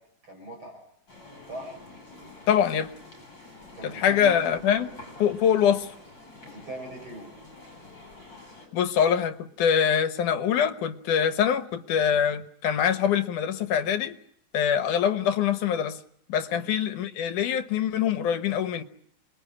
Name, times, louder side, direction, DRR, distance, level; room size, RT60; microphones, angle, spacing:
voice 1, 0.2-0.8 1.5-1.8 3.7-4.9 6.5-7.3 16.5-16.6, right 1 dB, 40° right, 7.3 m, -41 dB
sound 1, 1.1-8.7, left 2 dB, 35° left, 8.6 m, -48 dB
voice 2, 2.5-2.9 3.8-4.9 5.2-5.9 8.7-14.2 14.5-16.0 16.3-18.8, left 8 dB, 85° left, 2.8 m, -24 dB
28.5 x 21.0 x 8.6 m
omnidirectional pair, 3.5 m